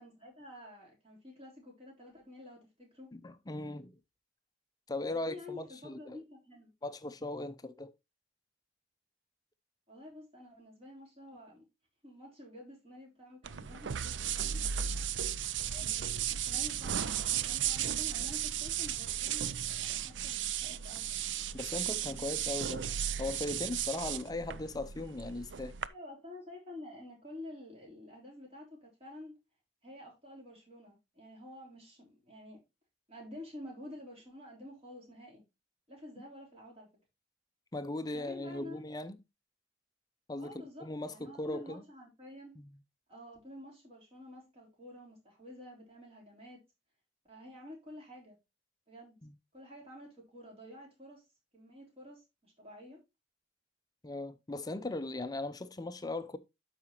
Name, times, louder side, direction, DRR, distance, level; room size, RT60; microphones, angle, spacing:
voice 1, 0.0-3.1 5.1-6.7 9.9-11.6 12.0-14.7 15.7-21.2 25.9-29.4 29.8-32.6 33.1-35.4 35.9-36.9 38.0-38.8 40.4-42.6 43.1-46.6 47.3-48.4 48.9-49.2 49.5-51.2 51.5-53.0, left 1 dB, 35° right, 3.6 m, -50 dB
voice 2, 3.1-3.9 4.9-6.2 6.8-7.9 21.5-22.9 23.2-25.7 37.7-39.1 40.3-41.8 42.6-42.7 49.2-49.3 54.0-56.4, left 2 dB, 20° left, 0.5 m, -38 dB
sound 1, 13.4-25.9, right 9 dB, 85° right, 0.5 m, -35 dB
12.5 x 4.9 x 2.9 m
head